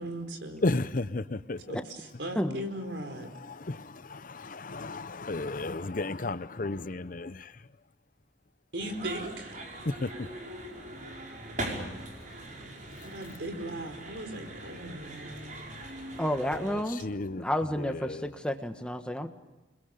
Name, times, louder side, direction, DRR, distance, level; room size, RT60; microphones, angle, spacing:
voice 1, 0.0-0.6 1.7-3.3 8.7-9.6 13.0-15.7, right 1 dB, 75° right, 4.6 m, -38 dB
voice 2, 0.6-1.8 3.2-7.7 9.8-10.3 13.0-13.1 15.8-16.2 16.5-17.4 17.7-18.3, left 2 dB, 50° left, 0.8 m, -34 dB
sound 1, 8.8-16.8, right 1 dB, 45° right, 5.7 m, -41 dB
voice 3, 16.2-17.0 17.4-19.3, equal, 5° left, 1.4 m, -31 dB
29.5 x 22.0 x 6.7 m
head